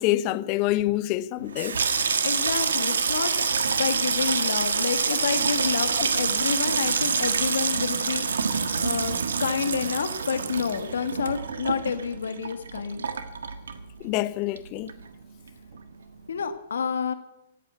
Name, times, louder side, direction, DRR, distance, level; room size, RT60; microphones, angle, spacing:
voice 1, 0.0-1.8 14.0-14.9, left 15 dB, 35° left, 0.6 m, -26 dB
Water tap faucet / Sink (filling or washing), 1.4-14.3 14.6-15.2 15.5-15.8, right 5 dB, 75° right, 1.4 m, -26 dB
voice 2, 2.2-8.5 8.8-13.1 16.3-17.1, left 6 dB, 75° left, 1.6 m, -29 dB
16.5 x 8.6 x 8.2 m
hypercardioid pair, 125°, 0 cm